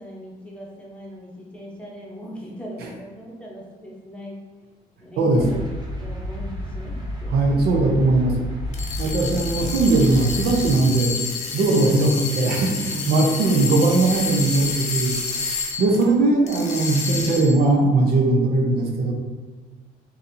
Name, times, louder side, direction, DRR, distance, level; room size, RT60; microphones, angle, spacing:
voice 1, 0.0-4.4 5.0-5.6 6.0-7.6, equal, 5° left, -4 dB, 0.8 m, -38 dB
sound 1, 5.3-10.7, equal, 25° right, 0.7 m, -31 dB
voice 2, 7.3-8.4 9.0-11.2 11.5-15.5 15.8-19.1, right 2 dB, 70° right, 1 dB, 0.6 m, -19 dB
sound 2, 8.7-16.1 16.5-17.6, left 4 dB, 45° left, 0.6 m, -29 dB
4.0 x 2.7 x 2.7 m, 1.3 s
cardioid pair, 110°, 17 cm